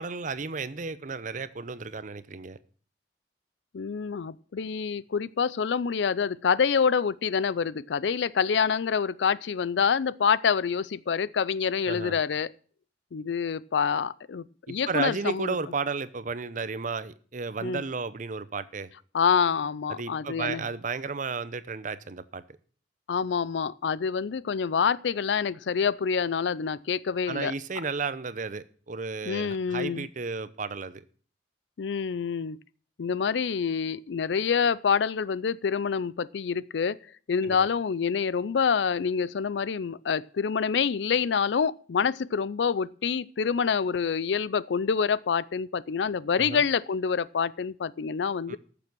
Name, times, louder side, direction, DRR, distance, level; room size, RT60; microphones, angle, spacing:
voice 1, 0.0-2.6 11.9-12.2 14.7-18.9 19.9-22.4 27.3-31.0 37.4-37.7 46.4-46.6 48.5-48.6, right 4 dB, 45° right, 0.7 m, -33 dB
voice 2, 3.7-12.5 13.1-15.5 17.6-17.8 19.1-20.6 23.1-27.5 29.3-30.1 31.8-32.6 33.0-37.0 37.3-48.6, left 6 dB, 75° left, 0.4 m, -27 dB
14.0 x 7.0 x 6.1 m
head